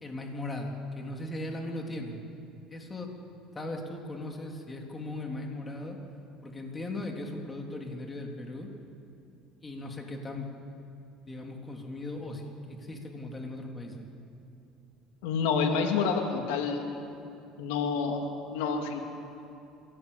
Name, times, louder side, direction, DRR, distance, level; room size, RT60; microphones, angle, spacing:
voice 1, 0.0-2.2 2.7-3.1 3.6-6.0 6.4-8.7 9.6-10.5 11.3-14.1, left 2 dB, 20° left, 2 dB, 3.4 m, -38 dB
voice 2, 15.2-16.8 17.6-19.0, left 5 dB, 90° left, 4 dB, 2.4 m, -28 dB
26.5 x 17.5 x 8.7 m, 2.7 s
supercardioid pair, 110°, 0 cm